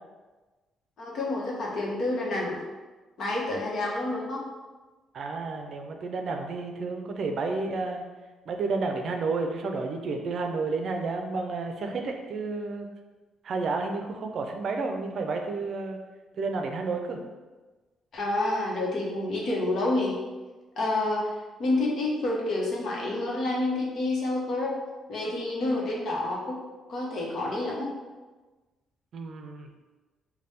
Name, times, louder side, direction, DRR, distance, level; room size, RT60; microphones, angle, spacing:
voice 1, 1.0-2.6 3.2-4.4 18.1-20.2 20.8-21.3 21.6-24.8 25.1-26.6 26.9-27.9, left 2 dB, 60° left, -3 dB, 1.0 m, -28 dB
voice 2, 5.1-8.0 8.5-12.9 13.4-16.0 16.4-17.2 29.1-29.7, right 3 dB, 60° right, 4 dB, 0.5 m, -31 dB
3.3 x 2.2 x 4.1 m, 1.2 s
cardioid pair, 90°, 0 cm